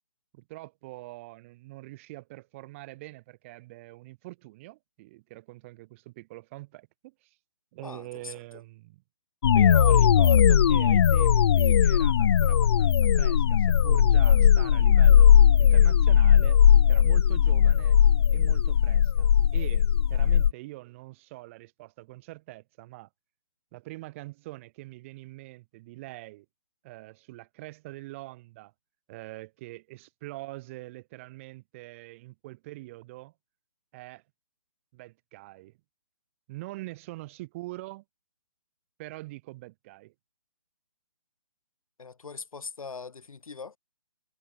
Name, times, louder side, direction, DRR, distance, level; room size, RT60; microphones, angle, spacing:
voice 1, 0.3-7.3 7.7-9.0 9.5-15.3 15.6-16.6 16.9-18.0 18.3-23.1 23.7-26.4 26.8-28.7 29.1-33.3 33.9-34.2 34.9-35.7 36.5-38.0 39.0-40.1, right 20 dB, 25° right, 1.3 m, -43 dB
voice 2, 7.8-8.6 42.0-43.8, left 5 dB, 85° left, 2.5 m, -42 dB
sound 1, 9.4-20.5, left 8 dB, 50° left, 0.5 m, -19 dB
hypercardioid pair, 160°, 17 cm